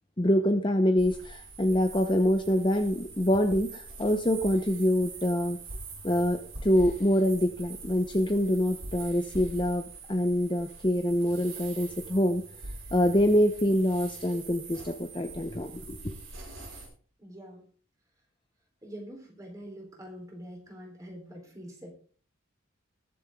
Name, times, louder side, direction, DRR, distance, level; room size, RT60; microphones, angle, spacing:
voice 1, 0.2-5.6 6.0-12.4 12.9-16.1, equal, 25° left, 6 dB, 0.8 m, -25 dB
sound 1, 1.0-16.9, right 3 dB, 70° right, 6.4 m, -44 dB
voice 2, 17.2-17.6 18.8-21.9, equal, 15° right, 0 dB, 3.6 m, -44 dB
21.0 x 7.2 x 3.6 m, 0.44 s
head